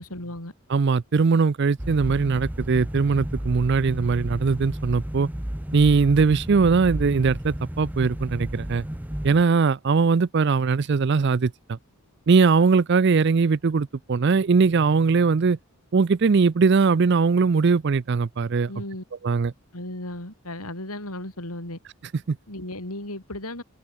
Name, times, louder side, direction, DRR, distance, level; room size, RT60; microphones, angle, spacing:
voice 1, 0.0-0.5 18.7-19.0 19.7-21.8 22.5-23.6, left 1 dB, 85° left, 8.0 m, -35 dB
voice 2, 0.7-5.3 5.7-8.8 9.2-11.8 12.3-15.6 15.9-18.7 19.2-19.5 22.3-22.4, right 4 dB, 50° right, 0.4 m, -20 dB
sound 1, 1.8-9.4, equal, 5° right, 0.7 m, -32 dB
head